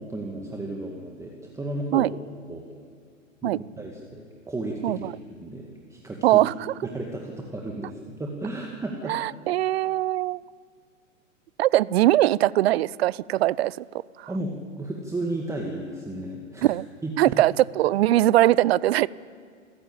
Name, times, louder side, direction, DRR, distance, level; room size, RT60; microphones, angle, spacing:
voice 1, 0.0-2.1 2.5-2.7 3.4-6.4 6.8-7.9 8.2-9.2 14.3-16.7 17.0-17.1, right 2 dB, 5° right, 0 dB, 2.2 m, -33 dB
voice 2, 6.2-6.5 9.1-10.4 11.6-13.8 14.2-14.3 16.6-16.8 17.2-19.1, right 15 dB, 50° right, 23 dB, 0.6 m, -21 dB
27.5 x 15.5 x 8.9 m, 2.1 s
figure-of-eight pair, 110°, 40 cm